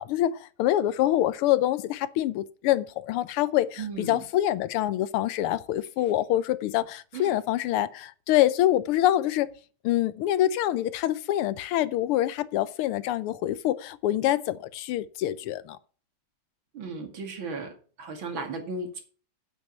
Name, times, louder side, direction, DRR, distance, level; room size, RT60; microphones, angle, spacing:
voice 1, 0.0-9.5 9.8-15.8, left 13 dB, 85° left, 1.6 m, -25 dB
voice 2, 3.8-4.2 7.1-7.4 16.7-17.7 18.0-19.0, right 3 dB, 65° right, 2.9 m, -35 dB
9.2 x 7.6 x 5.7 m
omnidirectional pair, 2.4 m